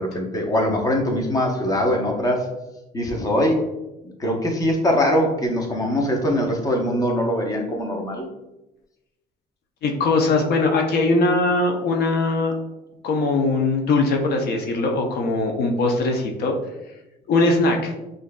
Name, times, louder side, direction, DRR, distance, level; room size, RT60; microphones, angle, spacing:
voice 1, 0.0-2.5 2.9-3.7 4.2-8.3, equal, 20° left, 1 dB, 0.8 m, -22 dB
voice 2, 9.8-12.6 13.0-16.5 17.3-17.9, left 2 dB, 70° left, 2 dB, 0.6 m, -20 dB
6.1 x 2.6 x 2.2 m, 0.97 s
cardioid pair, 110°, 17 cm